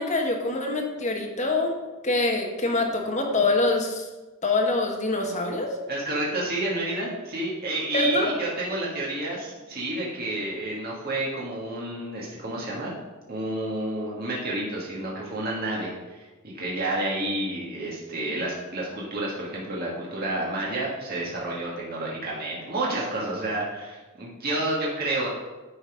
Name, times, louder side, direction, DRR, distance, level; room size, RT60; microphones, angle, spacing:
voice 1, 0.0-1.7 2.0-4.0 4.4-5.7 7.9-8.3, left 2 dB, 35° left, 2 dB, 1.2 m, -25 dB
voice 2, 5.9-12.9 13.3-16.2 16.4-25.3, right 1 dB, 45° right, -5 dB, 1.6 m, -30 dB
9.9 x 4.0 x 5.0 m, 1.2 s
head